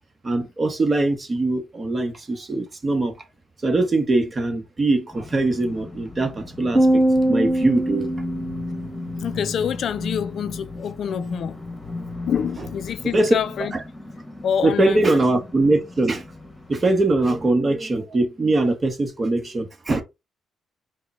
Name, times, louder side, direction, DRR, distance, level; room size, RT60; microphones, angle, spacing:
voice 1, 0.2-3.1 3.6-6.9 7.3-8.1 13.1-13.3 13.7-13.8 14.6-16.2 16.7-20.0, right 2 dB, 30° right, 1.0 m, -21 dB
sound 1, 5.1-17.5, left 3 dB, 15° left, 1.3 m, -36 dB
sound 2, 6.8-9.2, right 1 dB, 10° right, 1.2 m, -21 dB
voice 2, 9.2-11.6 12.2-13.7 14.4-15.2, left 8 dB, 60° left, 0.3 m, -26 dB
4.8 x 2.2 x 4.1 m
cardioid pair, 90°, 0 cm